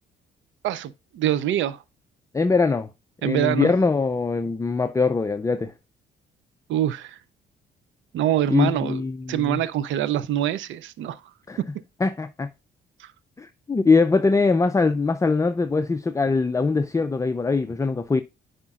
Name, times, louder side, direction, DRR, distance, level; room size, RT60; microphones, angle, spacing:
voice 1, 0.6-1.8 3.2-3.7 6.7-7.2 8.1-9.0 9.3-11.2 13.0-13.1, right 11 dB, 75° right, 0.5 m, -24 dB
voice 2, 2.3-2.9 3.2-5.7 8.5-9.6 11.5-11.6 12.0-12.5 13.4-18.2, left 4 dB, 15° left, 0.5 m, -22 dB
9.7 x 5.0 x 2.3 m
cardioid pair, 90°, 20 cm